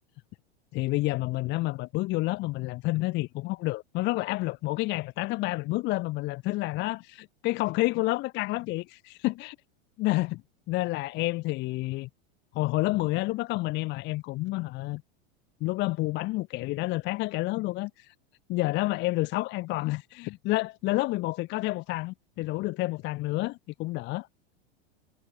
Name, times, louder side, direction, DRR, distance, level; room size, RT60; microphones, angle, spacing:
voice 1, 0.7-9.6 10.0-10.4 10.7-12.1 12.5-15.0 15.6-18.1 18.5-24.3, left 20 dB, 35° left, 0.5 m, -29 dB
hypercardioid pair, 115°, 32 cm